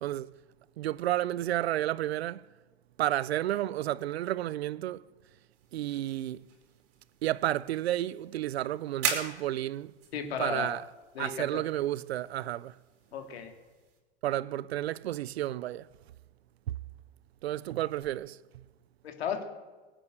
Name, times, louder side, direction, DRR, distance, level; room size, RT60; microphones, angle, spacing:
voice 1, 0.0-0.3 0.8-2.4 3.0-5.0 5.7-6.5 7.2-9.9 10.4-10.8 11.2-12.7 14.2-15.8 17.4-18.4, right 13 dB, 85° right, 0.6 m, -31 dB
sound 1, 5.5-14.0, right 7 dB, 50° right, 4.6 m, -41 dB
voice 2, 10.1-10.8 11.1-11.6 13.1-13.5 19.0-19.4, left 7 dB, 80° left, 2.9 m, -35 dB
18.5 x 9.0 x 8.2 m
hypercardioid pair, 105°, 31 cm